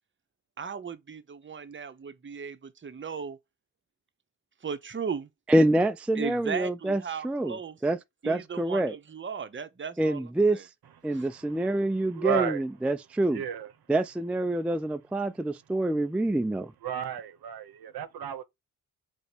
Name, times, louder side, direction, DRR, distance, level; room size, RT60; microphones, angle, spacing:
voice 1, 0.6-3.4 4.6-5.3 6.1-7.8 8.2-10.7 11.1-11.3, right 6 dB, 30° right, 0.7 m, -37 dB
voice 2, 5.5-7.6 7.8-8.0 8.3-8.9 10.0-10.6 11.0-13.4 13.9-16.7, right 1 dB, 5° right, 0.3 m, -26 dB
voice 3, 12.1-12.6 13.3-13.7 16.8-18.4, right 9 dB, 70° right, 0.8 m, -32 dB
3.8 x 2.1 x 4.4 m
supercardioid pair, 40°, 40 cm